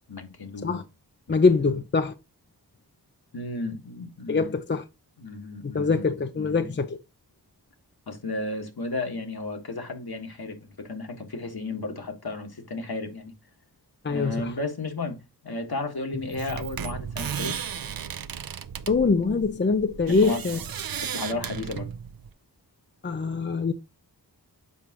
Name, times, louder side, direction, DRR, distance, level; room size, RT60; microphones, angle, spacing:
voice 1, 0.1-0.8 1.3-1.4 1.7-1.8 3.3-4.5 5.2-6.0 6.3-6.7 8.1-13.3 14.1-15.2 15.4-17.7 20.1-20.7 21.0-21.9, left 2 dB, 60° left, 1.7 m, -34 dB
voice 2, 1.3-2.1 4.3-4.8 5.7-7.0 14.0-14.5 18.9-20.6 23.0-23.7, left 4 dB, 25° left, 0.6 m, -23 dB
sound 1, 16.2-22.3, right 8 dB, 60° right, 0.6 m, -35 dB
7.4 x 4.8 x 2.9 m
cardioid pair, 45°, 41 cm